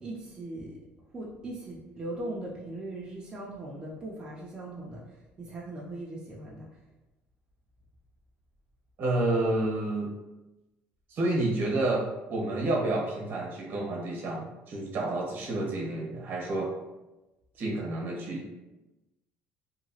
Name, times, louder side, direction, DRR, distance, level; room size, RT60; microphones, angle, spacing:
voice 1, 0.0-0.8 1.1-5.0 5.4-6.7, right 1 dB, 20° right, -5 dB, 0.4 m, -39 dB
voice 2, 9.0-10.1 11.1-16.7 17.6-18.4, right 2 dB, 55° right, -2 dB, 0.9 m, -29 dB
2.8 x 2.3 x 2.7 m, 1.0 s
cardioid pair, 125°, 4 cm